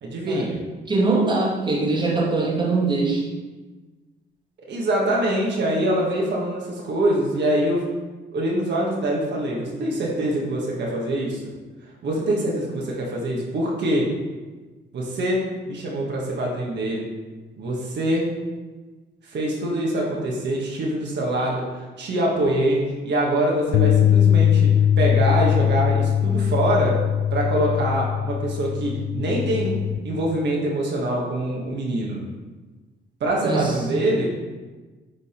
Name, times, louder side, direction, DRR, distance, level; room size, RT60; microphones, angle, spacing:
voice 1, 0.0-0.6 4.6-7.9 8.3-11.4 12.0-14.1 14.9-17.1 17.6-18.3 19.2-27.0 27.3-29.8 30.0-32.2 33.2-34.3, right 1 dB, 60° right, -3 dB, 1.6 m, -24 dB
voice 2, 0.9-3.2 33.4-33.9, right 3 dB, 25° right, -5 dB, 2.0 m, -22 dB
sound 1, 23.7-30.0, left 9 dB, 80° left, 0.4 m, -20 dB
8.8 x 4.0 x 4.4 m, 1.3 s
cardioid pair, 90°, 20 cm